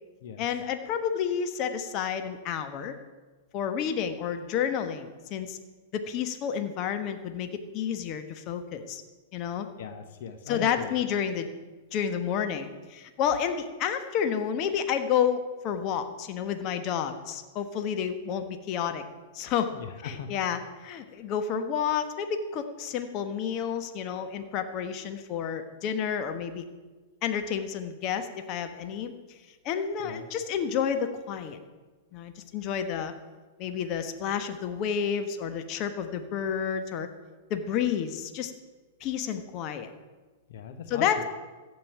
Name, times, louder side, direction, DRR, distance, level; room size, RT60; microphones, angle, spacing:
voice 1, 0.4-2.9 3.5-5.6 5.9-9.0 9.3-9.7 10.5-11.5 11.9-19.0 19.3-19.7 20.0-26.6 27.2-29.1 29.6-31.6 32.1-33.1 33.6-37.1 37.5-38.5 39.0-39.9 40.9-41.2, left 8 dB, 40° left, 8 dB, 1.2 m, -30 dB
voice 2, 9.8-11.0 19.8-20.3 30.0-30.3 40.5-41.1, left 7 dB, 60° left, 7 dB, 1.1 m, -39 dB
15.0 x 5.4 x 9.1 m, 1.3 s
hypercardioid pair, 105°, 0 cm